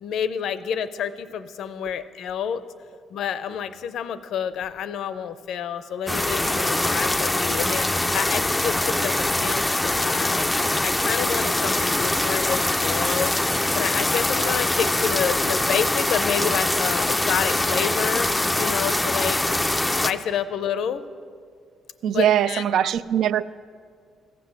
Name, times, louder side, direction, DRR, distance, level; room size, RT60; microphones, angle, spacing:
voice 1, 0.0-2.6 3.1-13.3 13.7-19.4 19.9-21.0 22.1-22.9, left 8 dB, 70° left, 0.6 m, -29 dB
sound 1, 6.1-20.1, left 1 dB, 10° left, 0.4 m, -23 dB
voice 2, 22.0-23.4, right 10 dB, 65° right, 0.3 m, -21 dB
15.5 x 7.6 x 7.2 m
cardioid pair, 150°, 0 cm